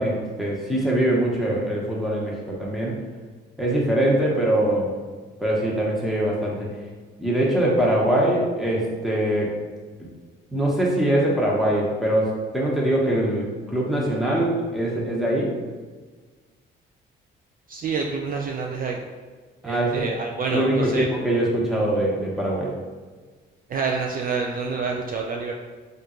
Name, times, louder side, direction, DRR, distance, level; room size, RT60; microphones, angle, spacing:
voice 1, 0.0-2.3 2.6-3.0 3.6-4.9 5.4-6.7 7.2-9.5 10.5-15.5 19.6-20.0 20.5-22.7, right 1 dB, ahead, -4 dB, 1.2 m, -22 dB
voice 2, 17.7-19.0 19.6-21.1 23.7-25.5, right 5 dB, 45° right, 1 dB, 0.4 m, -27 dB
3.5 x 2.6 x 4.3 m, 1.4 s
cardioid pair, 90°, 20 cm